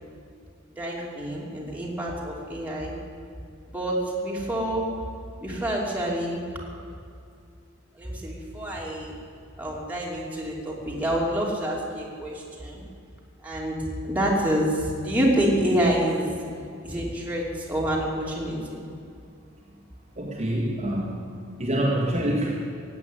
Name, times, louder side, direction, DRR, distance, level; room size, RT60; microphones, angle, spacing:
voice 1, 0.8-2.9 3.7-4.9 5.4-6.4 8.0-9.1 9.6-12.8 13.4-16.3 16.8-18.8, right 1 dB, 10° right, -4 dB, 3.0 m, -27 dB
voice 2, 20.2-21.2 21.6-22.6, right 1 dB, 35° right, -4 dB, 2.0 m, -26 dB
16.5 x 8.6 x 9.5 m, 2.4 s
head